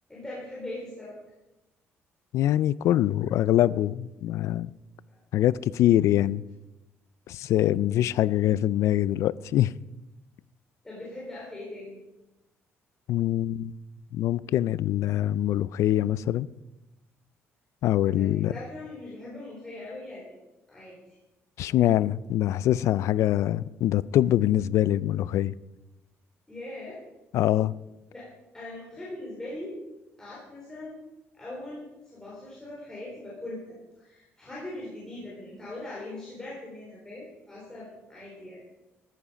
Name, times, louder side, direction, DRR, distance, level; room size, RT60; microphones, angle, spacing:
voice 1, 0.1-1.2 4.3-4.4 5.1-5.2 10.8-12.0 18.1-20.3 20.7-21.0 26.5-27.0 28.1-28.3 28.5-29.8 30.2-31.0 31.3-31.9 32.1-38.6, left 1 dB, 10° left, 3.9 m, -40 dB
voice 2, 2.3-4.7 5.3-6.4 7.3-9.7 13.1-13.7 14.1-16.5 17.8-18.5 21.6-25.5 27.3-27.7, left 13 dB, 75° left, 0.4 m, -24 dB
14.0 x 10.0 x 5.1 m
cardioid pair, 120°, 5 cm